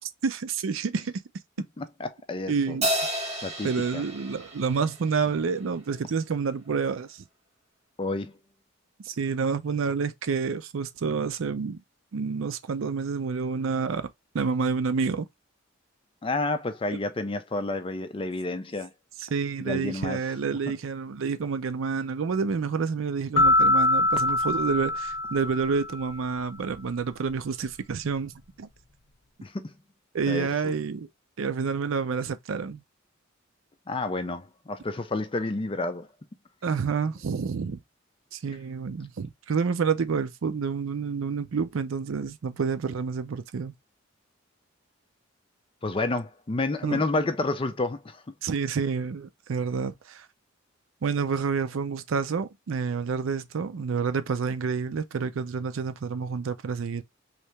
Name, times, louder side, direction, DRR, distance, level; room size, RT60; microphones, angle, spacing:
voice 1, 0.2-1.2 2.5-2.9 3.6-7.2 9.0-11.8 12.1-14.1 14.3-15.3 19.2-28.7 30.1-31.1 31.4-32.8 36.6-37.8 38.3-43.7 46.8-47.0 48.4-50.3 51.0-57.0, right 5 dB, 80° right, 0.5 m, -28 dB
voice 2, 1.8-2.8 3.4-4.0 8.0-8.3 16.2-18.9 19.6-20.2 20.7-20.8 29.4-29.7 30.3-30.7 33.9-36.1 45.8-48.3, left 2 dB, 25° left, 0.4 m, -30 dB
Crash cymbal, 2.8-5.5, equal, 30° right, 1.2 m, -31 dB
sound 1, 23.4-26.1, left 2 dB, 55° left, 0.9 m, -23 dB
3.2 x 2.8 x 3.1 m
head